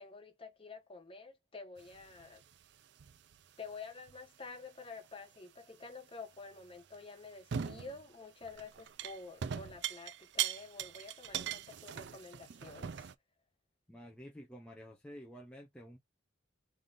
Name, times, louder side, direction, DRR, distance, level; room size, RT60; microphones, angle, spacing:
voice 1, 0.0-2.4 3.6-13.1, left 4 dB, 25° left, 0.9 m, -49 dB
sound 1, 1.8-2.6 3.0-3.4 4.1-4.2 6.9-7.0 7.5-8.0 8.4-13.1, right 9 dB, 55° right, 0.4 m, -40 dB
voice 2, 13.9-16.0, equal, 5° left, 0.5 m, -50 dB
3.8 x 3.3 x 2.5 m
head